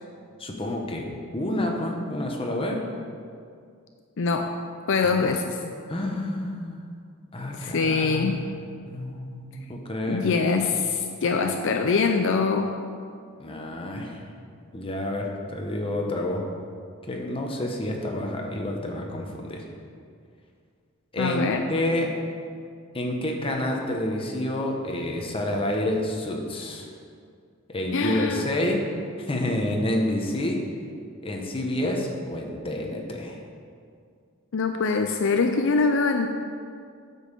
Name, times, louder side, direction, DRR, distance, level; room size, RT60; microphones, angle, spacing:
voice 1, 0.4-1.1 1.3-2.8 5.0-5.3 5.9-6.8 7.3-10.4 13.4-14.2 14.7-16.5 17.1-19.6 21.1-22.1 22.9-26.9 27.7-28.8 29.2-30.6 31.2-33.4, left 1 dB, 25° left, 1 dB, 1.0 m, -29 dB
voice 2, 4.2-4.5 4.9-5.6 7.5-8.4 10.1-12.7 21.2-21.6 27.9-28.5 34.5-36.3, left 4 dB, 60° left, 5 dB, 0.5 m, -23 dB
8.6 x 5.5 x 6.7 m, 2.3 s
head